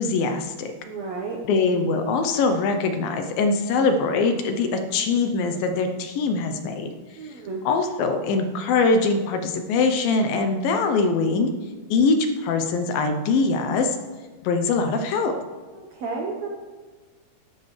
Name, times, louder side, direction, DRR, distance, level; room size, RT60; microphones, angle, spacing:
voice 1, 0.0-0.7 1.4-6.9 7.7-11.5 11.9-14.0 14.4-15.3, left 4 dB, 75° left, 6 dB, 2.4 m, -22 dB
voice 2, 0.9-1.4 7.2-7.6 15.7-16.5, right 4 dB, 65° right, -1 dB, 1.7 m, -32 dB
19.0 x 10.5 x 3.3 m, 1.4 s
omnidirectional pair, 4.5 m